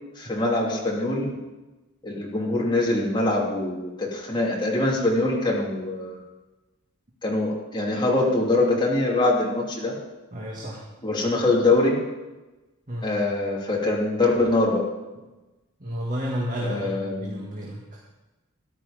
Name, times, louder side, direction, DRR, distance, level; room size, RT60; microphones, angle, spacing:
voice 1, 0.2-1.3 2.0-6.2 7.2-9.9 11.0-12.0 13.0-14.8 16.6-17.4, left 2 dB, 20° left, -3 dB, 2.9 m, -23 dB
voice 2, 10.3-10.8 12.9-13.1 15.8-17.8, equal, 40° right, -3 dB, 2.1 m, -31 dB
14.0 x 11.5 x 5.2 m, 1.1 s
head